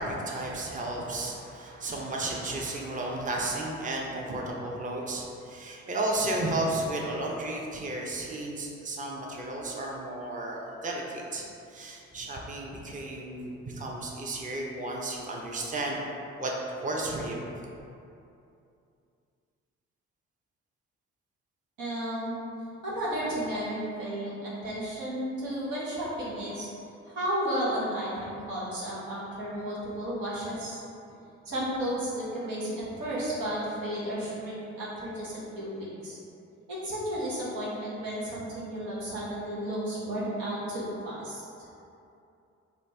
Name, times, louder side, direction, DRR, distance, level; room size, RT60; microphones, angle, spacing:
voice 1, 0.0-11.4 11.7-16.0 16.4-16.5 16.8-17.5, right 2 dB, 25° right, -2 dB, 0.6 m, -33 dB
voice 2, 21.8-22.4 22.8-26.7 27.0-30.8 31.5-36.2 36.7-41.4, right 1 dB, 90° right, -8 dB, 1.1 m, -33 dB
3.9 x 2.5 x 3.3 m, 2.6 s
supercardioid pair, 55°, 32 cm